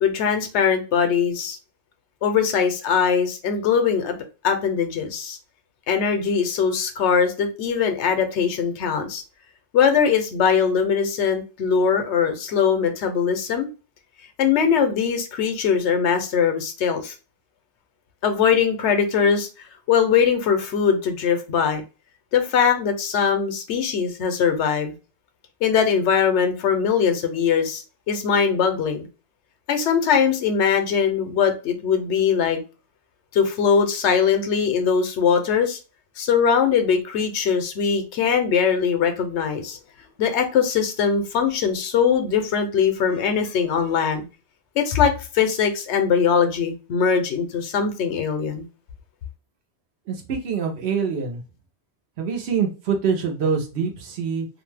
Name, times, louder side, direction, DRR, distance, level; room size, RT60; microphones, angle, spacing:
voice 1, 0.0-1.6 2.2-4.2 4.4-5.4 5.9-9.2 9.7-13.7 14.4-17.1 18.2-19.5 19.9-21.8 22.3-24.9 25.6-29.1 29.7-32.6 33.3-35.8 36.2-39.8 40.2-44.2 44.8-48.7, left 7 dB, 85° left, 6 dB, 0.9 m, -21 dB
voice 2, 50.1-51.4 52.2-54.5, right 6 dB, 75° right, 3 dB, 1.0 m, -25 dB
2.6 x 2.1 x 3.2 m, 0.32 s
omnidirectional pair, 1.1 m